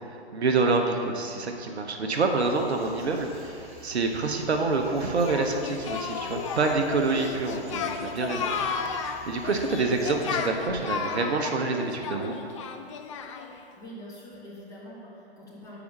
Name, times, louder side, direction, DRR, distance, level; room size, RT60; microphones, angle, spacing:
voice 1, 0.0-8.5 8.8-12.3, right 3 dB, 75° right, 4 dB, 0.9 m, -27 dB
sound 1, 2.2-10.5, equal, 20° right, 1.4 m, -49 dB
Singing, 5.3-13.6, left 6 dB, 30° left, 0.4 m, -33 dB
voice 2, 13.8-15.8, equal, 10° left, -8 dB, 1.9 m, -44 dB
7.0 x 4.9 x 6.6 m, 2.6 s
figure-of-eight pair, 125°, 33 cm